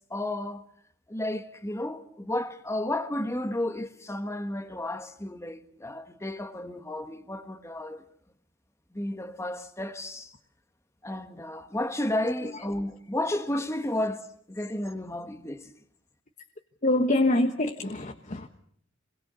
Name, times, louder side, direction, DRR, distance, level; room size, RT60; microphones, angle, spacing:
voice 1, 0.1-0.6 1.1-8.0 8.9-10.3 11.0-15.7, left 1 dB, 15° left, 1.3 m, -32 dB
voice 2, 16.8-18.5, left 1 dB, 35° left, 1.3 m, -25 dB
27.5 x 22.0 x 6.9 m
head